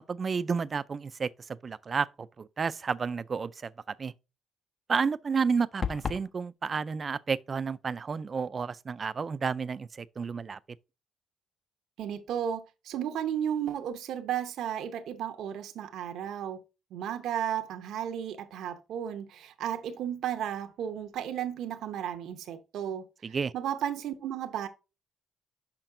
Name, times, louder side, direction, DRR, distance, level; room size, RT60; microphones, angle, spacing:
voice 1, 0.1-1.3 1.6-3.7 4.0-4.1 4.9-10.6 23.2-23.5, right 5 dB, 40° right, 0.4 m, -31 dB
sound 1, 5.8-6.3, left 6 dB, 40° left, 0.7 m, -32 dB
voice 2, 12.0-16.6 16.9-24.7, right 9 dB, 80° right, 0.8 m, -34 dB
5.9 x 5.7 x 3.7 m
cardioid pair, 90°, 0 cm